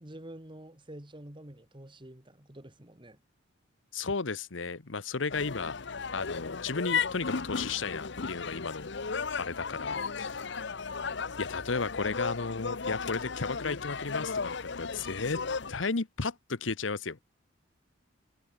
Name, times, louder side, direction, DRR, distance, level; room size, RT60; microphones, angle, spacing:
voice 1, 0.0-3.2, right 1 dB, 25° right, 2.2 m, -48 dB
voice 2, 3.9-5.7 6.1-10.4 11.4-14.5 14.8-15.4 15.7-17.2, left 4 dB, 85° left, 1.1 m, -34 dB
sound 1, 5.3-15.7, left 5 dB, 65° left, 1.0 m, -35 dB
head